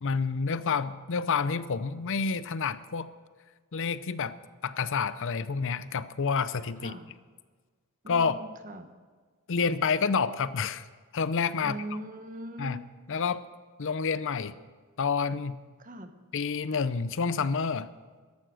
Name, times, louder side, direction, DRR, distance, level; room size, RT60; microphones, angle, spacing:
voice 1, 0.0-3.1 3.7-4.4 4.6-6.9 8.1-8.3 9.5-10.9 11.1-11.8 12.6-12.8 13.1-13.4 13.8-14.5 15.0-15.6 16.3-17.9, left 5 dB, 60° left, 15 dB, 0.6 m, -28 dB
voice 2, 6.8-7.1 8.0-8.9 11.6-12.8 15.8-16.1, right 1 dB, 40° right, 8 dB, 1.2 m, -40 dB
14.0 x 11.5 x 6.3 m, 1.5 s
head